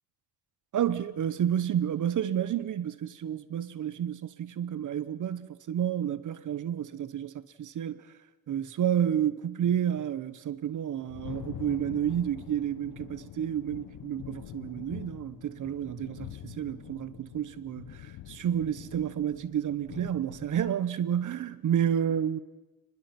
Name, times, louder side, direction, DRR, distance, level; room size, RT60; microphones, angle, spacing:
voice 1, 0.7-8.0 8.5-22.4, right 9 dB, 55° right, 1.0 m, -30 dB
Thunder, 10.6-20.7, left 12 dB, 60° left, 0.9 m, -45 dB
29.5 x 20.5 x 6.0 m
cardioid pair, 145°, 38 cm